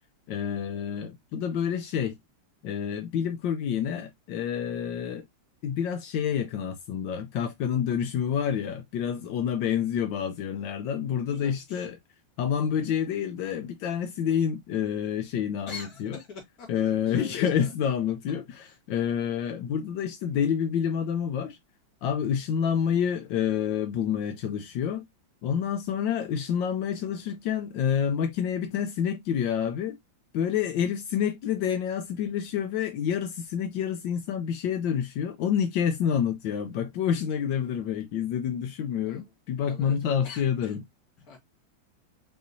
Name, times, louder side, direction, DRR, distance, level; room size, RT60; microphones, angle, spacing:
voice 1, 0.3-2.2 2.6-5.3 5.6-12.0 12.4-16.2 16.7-21.6 22.0-25.0 25.4-30.0 30.3-40.8, left 8 dB, 80° left, 1.3 m, -28 dB
voice 2, 11.3-11.9 15.7-17.7 18.6-18.8 39.0-39.3 39.6-40.0 40.2-40.7 41.2-41.4, left 5 dB, 50° left, 2.2 m, -45 dB
5.6 x 3.0 x 2.6 m
omnidirectional pair, 2.1 m